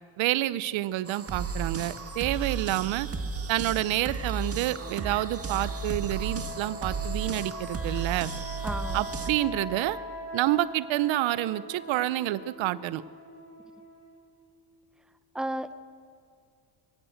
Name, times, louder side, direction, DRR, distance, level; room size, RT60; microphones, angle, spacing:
voice 1, 0.2-3.1 3.5-8.3 8.9-10.0 10.3-13.0, right 15 dB, 70° right, 17 dB, 0.7 m, -28 dB
sound 1, 1.1-9.3, right 4 dB, 30° right, 1.7 m, -34 dB
sound 2, 4.7-14.4, equal, 60° left, 7.3 m, -42 dB
voice 2, 8.6-9.1 15.3-15.7, right 1 dB, ahead, 11 dB, 0.9 m, -33 dB
24.0 x 14.5 x 7.9 m, 2.3 s
cardioid pair, 100°, 48 cm